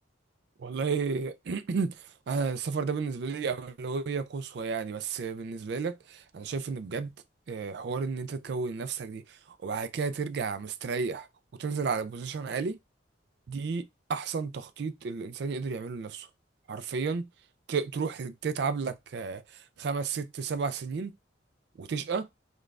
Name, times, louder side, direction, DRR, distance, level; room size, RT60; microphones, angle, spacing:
voice 1, 0.6-7.1 7.5-11.3 11.6-12.8 13.5-16.3 16.7-17.3 17.7-21.1 21.8-22.3, right 5 dB, 60° right, 0.3 m, -32 dB
5.1 x 2.3 x 2.4 m
head